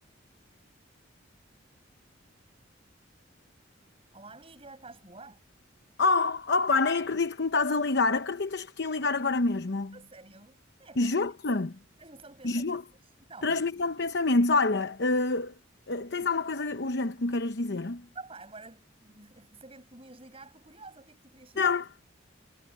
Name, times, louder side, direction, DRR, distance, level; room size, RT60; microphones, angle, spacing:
voice 1, 4.1-5.4 9.9-11.2 11.5-11.7 12.0-13.6 18.1-21.7, right 3 dB, 30° right, 7.7 m, -49 dB
voice 2, 6.0-9.9 11.0-11.7 12.4-12.8 13.4-15.5 15.9-18.1 21.6-22.0, left 3 dB, 60° left, 0.9 m, -27 dB
head